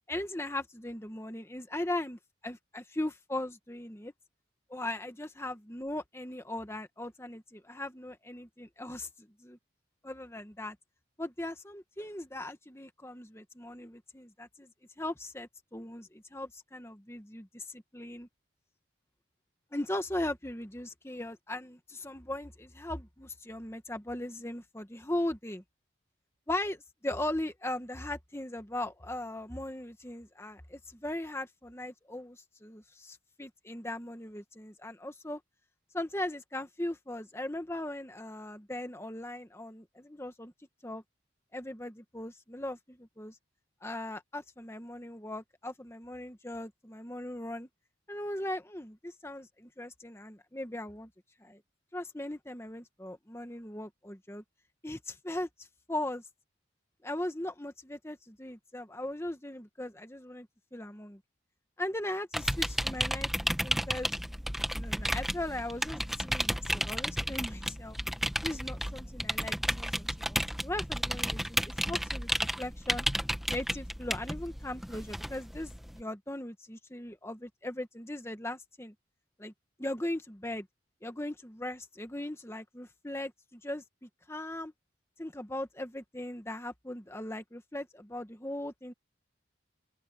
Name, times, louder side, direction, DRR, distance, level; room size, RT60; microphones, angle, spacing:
voice 1, 0.1-4.1 4.7-9.6 10.0-10.8 11.2-14.7 15.0-18.3 19.7-25.6 26.5-35.4 35.9-40.5 40.8-41.0 41.5-43.3 43.8-47.7 48.1-51.1 51.4-51.6 51.9-54.4 54.8-56.2 57.0-61.2 61.8-64.2 64.8-68.0 68.4-73.1 73.5-78.9 79.4-79.5 79.8-80.7 81.0-84.7 85.2-88.9, left 1 dB, 15° left, 1.3 m, -39 dB
sound 1, 62.3-76.0, equal, ahead, 1.1 m, -33 dB
open air
head